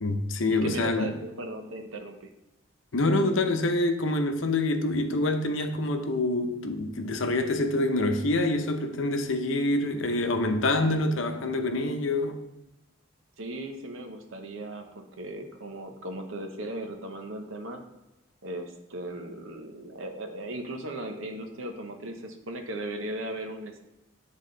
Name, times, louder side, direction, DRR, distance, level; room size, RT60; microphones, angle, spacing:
voice 1, 0.0-1.1 2.9-12.4, left 2 dB, 70° left, 0.7 m, -26 dB
voice 2, 0.5-2.3 13.4-17.8 18.4-23.8, right 1 dB, 80° right, 0.9 m, -37 dB
9.6 x 3.6 x 3.8 m
head